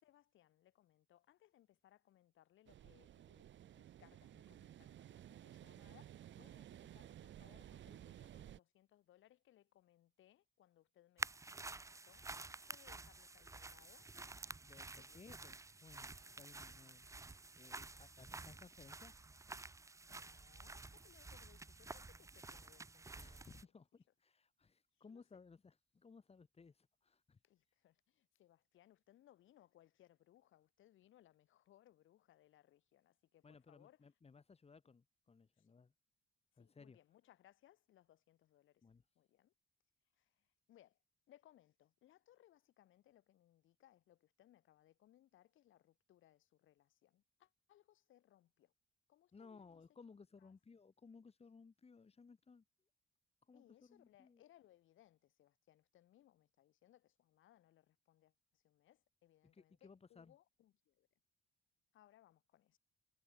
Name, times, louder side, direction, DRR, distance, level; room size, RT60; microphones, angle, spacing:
voice 1, 0.0-12.3 12.7-14.1 14.9-15.3 18.2-18.6 20.1-23.7 24.9-25.2 27.4-34.1 35.6-35.7 36.5-38.9 39.2-39.5 40.1-41.0 41.3-48.7 49.1-49.8 50.4-50.5 53.5-61.1 61.9-62.8, left 13 dB, 80° left, 5.2 m, -69 dB
sound 1, 2.7-8.6, right 11 dB, 70° right, 2.4 m, -56 dB
sound 2, 11.2-23.6, right 3 dB, 15° right, 0.7 m, -51 dB
voice 2, 14.6-17.1 17.6-19.1 23.2-27.4 33.4-35.9 36.6-37.0 38.8-39.0 49.3-52.6 53.5-54.4 59.5-60.3, left 5 dB, 30° left, 2.7 m, -61 dB
cardioid pair, 90°, 20 cm